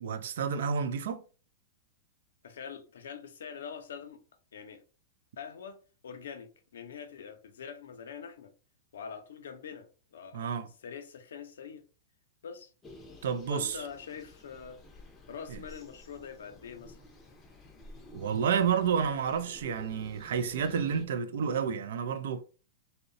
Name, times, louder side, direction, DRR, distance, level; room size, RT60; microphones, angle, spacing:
voice 1, 0.0-1.2 10.3-10.7 13.2-13.8 15.5-15.6 18.1-22.4, right 7 dB, 75° right, 0.4 m, -30 dB
voice 2, 2.4-4.2 4.5-4.8 5.4-5.8 6.0-8.5 8.9-11.8 12.4-12.7 13.5-14.8 15.3-17.0, left 7 dB, 90° left, 0.5 m, -44 dB
sound 1, 12.8-21.1, left 1 dB, 15° left, 0.5 m, -51 dB
2.7 x 2.1 x 2.5 m
supercardioid pair, 145°, 0 cm